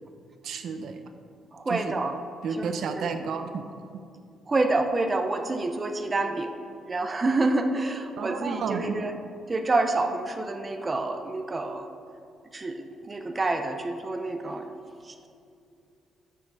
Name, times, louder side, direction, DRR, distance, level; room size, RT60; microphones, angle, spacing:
voice 1, 0.4-1.0 1.7-1.9 2.4-3.7 3.9-4.0 8.2-9.0, right 5 dB, 60° right, 7 dB, 0.7 m, -31 dB
voice 2, 1.5-2.2 2.6-3.1 4.5-9.1 9.5-11.9 12.5-14.7 15.0-15.3, right 2 dB, 20° right, 6 dB, 0.6 m, -28 dB
13.0 x 6.5 x 4.7 m, 2.5 s
cardioid pair, 130°, 0 cm